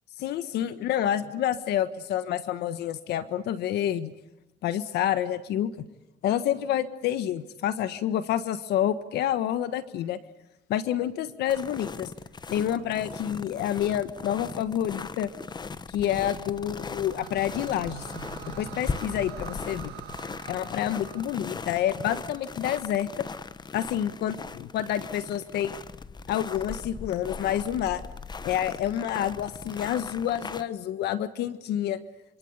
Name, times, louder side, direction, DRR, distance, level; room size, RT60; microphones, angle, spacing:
voice 1, 0.2-4.1 4.6-5.7 6.2-10.2 10.7-12.1 12.5-15.3 15.9-18.0 18.5-19.9 20.5-23.2 23.7-25.7 26.3-28.0 28.4-32.0, left 11 dB, 75° left, 12 dB, 1.5 m, -28 dB
sound 1, 11.5-30.6, left 4 dB, 25° left, 1.1 m, -39 dB
sound 2, 16.3-22.7, right 13 dB, 80° right, 1.7 m, -45 dB
27.0 x 26.5 x 8.2 m, 0.90 s
cardioid pair, 110°, 17 cm